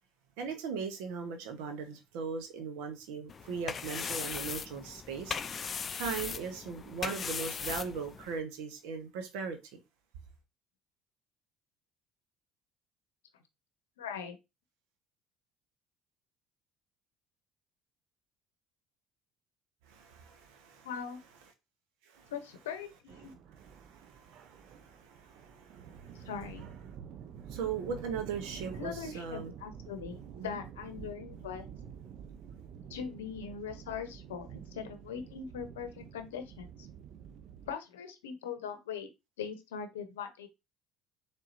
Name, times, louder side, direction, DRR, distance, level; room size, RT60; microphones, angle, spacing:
voice 1, 0.4-5.4 5.9-9.8 19.9-20.9 22.1-22.3 23.6-26.3 27.5-29.5 30.3-30.6, right 5 dB, 75° right, 1.0 m, -39 dB
sound 1, 3.3-8.4, left 6 dB, 40° left, 0.4 m, -38 dB
voice 2, 14.0-14.4 20.8-21.2 22.3-23.3 26.2-26.7 28.7-31.7 32.9-36.9 37.7-39.1 39.4-40.5, left 7 dB, 90° left, 0.7 m, -41 dB
sound 2, 23.1-37.7, right 8 dB, 60° right, 0.6 m, -48 dB
4.2 x 3.6 x 2.6 m
hypercardioid pair, 65°, 0 cm